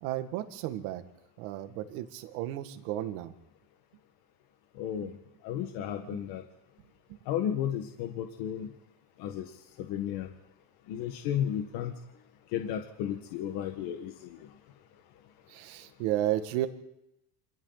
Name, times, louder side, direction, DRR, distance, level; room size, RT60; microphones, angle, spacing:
voice 1, 0.0-1.0 1.4-3.3 5.0-5.1 5.5-5.6 6.1-6.2 7.1-7.2 15.5-16.7, right 13 dB, 70° right, 8 dB, 2.1 m, -33 dB
voice 2, 4.8-5.1 5.4-6.4 7.3-8.7 9.2-9.5 9.8-10.3 10.9-11.9 12.5-14.4, left 10 dB, 55° left, 5 dB, 1.6 m, -33 dB
28.5 x 26.0 x 4.1 m, 0.86 s
cardioid pair, 180°, 44 cm